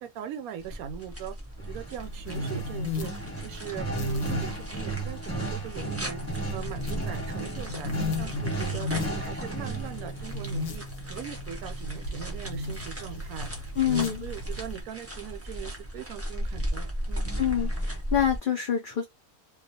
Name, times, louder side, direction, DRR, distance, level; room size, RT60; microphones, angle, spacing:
voice 1, 0.0-1.4 1.7-3.1 3.4-6.2 6.5-13.5 13.9-17.3, right 10 dB, 75° right, 1.0 m, -40 dB
sound 1, 0.6-18.4, equal, 20° right, 0.4 m, -38 dB
sound 2, 1.6-12.4 17.2-17.9, right 2 dB, 10° left, 1.0 m, -36 dB
sound 3, 2.0-14.8, left 2 dB, 70° left, 1.0 m, -35 dB
voice 2, 13.8-14.3 17.4-19.1, left 9 dB, 90° left, 0.4 m, -26 dB
2.4 x 2.1 x 2.6 m
omnidirectional pair, 1.5 m